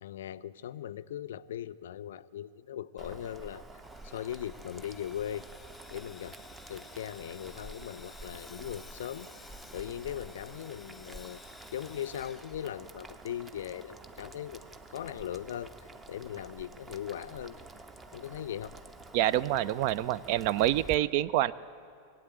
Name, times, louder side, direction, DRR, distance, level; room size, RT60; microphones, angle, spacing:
voice 1, 0.0-3.7 4.0-5.4 5.9-6.4 6.7-11.4 11.7-14.6 14.9-17.7 18.1-18.7, left 10 dB, 60° left, 15 dB, 0.4 m, -39 dB
Boiling, 3.0-20.9, right 2 dB, 15° right, 0.7 m, -49 dB
Sawing, 3.8-13.3, left 3 dB, 5° left, 0.9 m, -54 dB
voice 2, 19.1-21.5, right 13 dB, 45° right, 20 dB, 0.3 m, -27 dB
21.0 x 8.5 x 8.0 m, 2.4 s
figure-of-eight pair, 90°, 0 cm